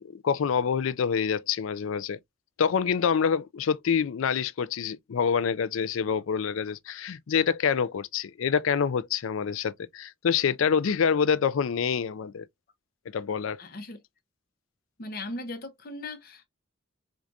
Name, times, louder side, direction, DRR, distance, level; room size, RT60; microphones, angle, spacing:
voice 1, 0.0-2.2 2.6-12.5 13.1-13.6, left 6 dB, 85° left, 0.4 m, -26 dB
voice 2, 13.6-14.0 15.0-16.5, left 2 dB, 50° left, 0.9 m, -38 dB
4.6 x 2.5 x 2.6 m
head